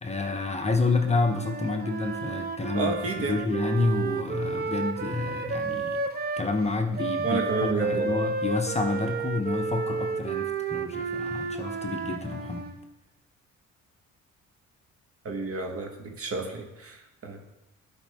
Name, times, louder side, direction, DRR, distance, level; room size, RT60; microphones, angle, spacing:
voice 1, 0.0-2.9 3.3-6.0 6.4-12.7, left 3 dB, 20° left, 4 dB, 0.8 m, -29 dB
Wind instrument woodwind instrument, 1.0-6.5 7.0-12.8, right 4 dB, 35° right, 0.8 m, -32 dB
voice 2, 2.7-3.4 7.2-8.1 15.2-17.5, right 3 dB, 50° right, 3 dB, 1.5 m, -30 dB
12.0 x 5.0 x 3.5 m, 0.93 s
cardioid pair, 90°, 30 cm